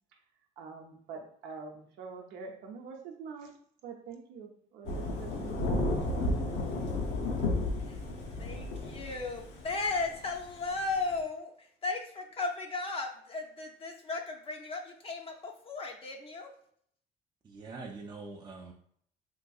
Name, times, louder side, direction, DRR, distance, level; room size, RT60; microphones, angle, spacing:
voice 1, 0.6-3.6 3.8-6.3, right 5 dB, 90° right, 2 dB, 0.6 m, -45 dB
Thunder / Rain, 4.9-11.2, left 2 dB, 90° left, 0.7 m, -32 dB
voice 2, 8.4-16.5, left 3 dB, 35° left, 2 dB, 0.4 m, -36 dB
voice 3, 17.4-18.7, right 3 dB, 25° right, 0 dB, 0.4 m, -44 dB
3.7 x 2.6 x 2.3 m, 0.63 s
cardioid pair, 110°, 17 cm